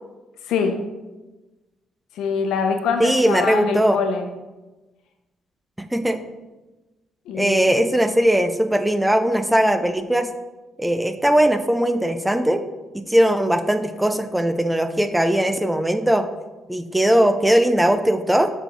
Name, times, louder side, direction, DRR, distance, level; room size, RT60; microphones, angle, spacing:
voice 1, 0.5-0.8 2.1-4.3 7.3-7.7, left 5 dB, 85° left, 5 dB, 1.0 m, -24 dB
voice 2, 3.0-4.0 5.8-6.2 7.3-10.3 10.8-12.6 12.9-16.3 16.7-18.5, right 1 dB, 5° right, 8 dB, 0.6 m, -19 dB
6.8 x 4.4 x 5.3 m, 1.1 s
cardioid pair, 90°, 0 cm